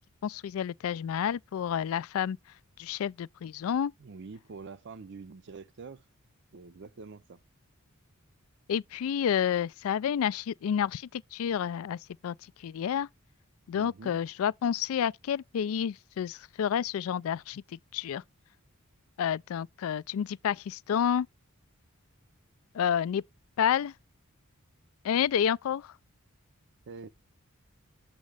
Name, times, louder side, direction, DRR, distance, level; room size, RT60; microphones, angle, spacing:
voice 1, 0.2-2.4 2.8-3.9 8.7-12.4 12.6-13.1 13.7-17.6 17.9-18.2 19.2-21.3 22.7-23.2 23.6-23.9 25.0-25.9, left 8 dB, 65° left, 0.3 m, -29 dB
voice 2, 4.0-6.1 6.5-7.4 13.7-14.2 26.9-27.1, right 4 dB, 55° right, 0.5 m, -45 dB
7.4 x 5.1 x 3.3 m
head